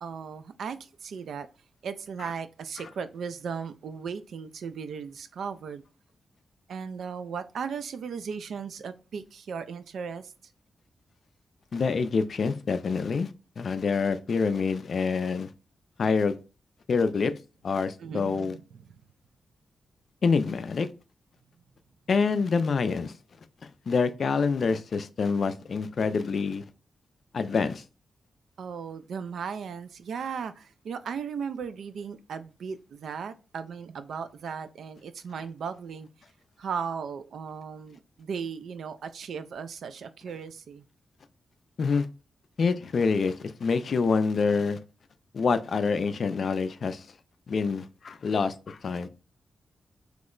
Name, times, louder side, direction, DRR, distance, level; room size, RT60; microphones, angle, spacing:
voice 1, 0.0-1.5 1.8-5.8 6.7-10.3 18.0-19.0 28.6-36.1 36.6-40.8, right 6 dB, 80° right, 0.3 m, -36 dB
voice 2, 11.7-13.3 13.6-15.5 16.0-16.4 16.9-17.3 17.6-18.5 20.2-20.9 22.1-23.1 23.9-26.6 27.3-27.8 41.8-42.1 42.6-44.8 45.3-47.1 47.5-49.1, left 5 dB, 50° left, 0.3 m, -26 dB
2.9 x 2.1 x 3.7 m
wide cardioid pair, 160°, 0 cm